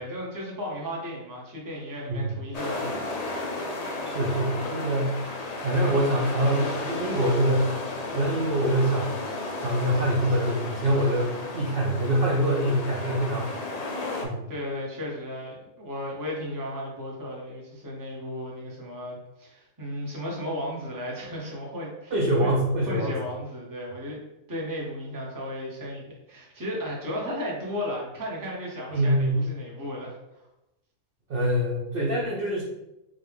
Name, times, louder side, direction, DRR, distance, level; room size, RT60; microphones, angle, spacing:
voice 1, 0.0-3.0 14.5-22.5 22.9-24.2 24.5-30.4, equal, 15° right, -3 dB, 0.8 m, -35 dB
sound 1, 2.5-14.2, left 2 dB, 55° left, 0.4 m, -33 dB
voice 2, 4.0-5.2 5.6-7.8 8.1-9.2 9.5-13.6 14.2-14.5 22.1-23.1 28.9-29.4 31.3-32.6, right 1 dB, 55° right, -3 dB, 0.7 m, -25 dB
4.9 x 2.3 x 3.4 m, 0.93 s
omnidirectional pair, 1.5 m